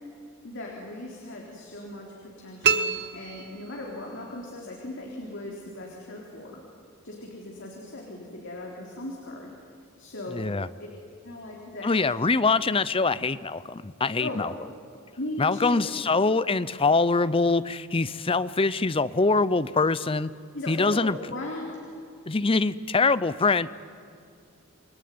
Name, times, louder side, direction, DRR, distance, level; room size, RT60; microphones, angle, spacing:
voice 1, 0.4-6.6 7.0-9.5 10.0-10.9 11.2-11.9 12.5-12.6 14.2-14.4 15.2-15.9 20.5-21.8, left 1 dB, 60° left, -2 dB, 3.9 m, -38 dB
sound 1, 2.6-4.2, right 6 dB, 50° right, 1.1 m, -27 dB
voice 2, 10.3-10.7 11.8-14.5 15.4-20.3 20.7-21.2 22.3-23.7, left 3 dB, 25° left, 16 dB, 0.6 m, -24 dB
29.5 x 20.5 x 9.4 m, 2.5 s
head